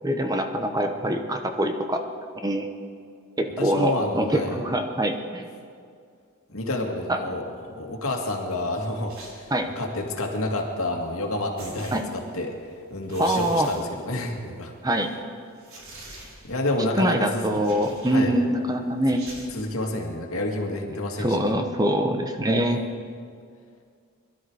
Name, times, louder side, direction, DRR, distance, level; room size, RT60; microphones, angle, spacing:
voice 1, 0.0-2.0 2.4-2.7 3.4-5.5 7.1-7.2 9.5-9.7 11.9-12.0 13.2-13.7 14.8-15.1 17.0-19.2 21.2-22.8, right 1 dB, 15° right, 5 dB, 0.9 m, -24 dB
voice 2, 3.6-4.6 6.5-9.5 9.8-12.5 12.9-14.7 16.4-17.4 18.1-18.3 19.5-21.4, left 2 dB, 65° left, 1 dB, 2.2 m, -29 dB
sound 1, 9.1-9.7 11.1-11.2 11.6-12.6 13.0-14.5 14.9-15.0 15.6-16.7 17.5-18.4 19.1-19.7, right 2 dB, 70° right, 3.8 m, -45 dB
22.5 x 13.0 x 4.8 m, 2.2 s
head